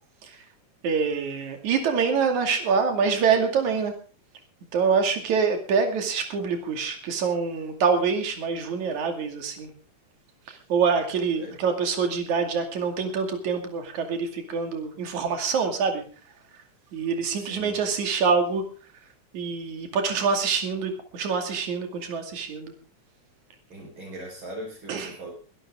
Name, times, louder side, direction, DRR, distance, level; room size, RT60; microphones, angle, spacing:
voice 1, 0.8-3.9 4.7-9.7 10.5-16.0 16.9-18.6 19.3-22.7 24.9-25.2, right 5 dB, 75° right, 5 dB, 3.8 m, -25 dB
voice 2, 17.4-17.8 23.7-25.3, right 1 dB, 40° right, -2 dB, 5.4 m, -40 dB
24.0 x 12.0 x 3.7 m, 0.35 s
omnidirectional pair, 3.4 m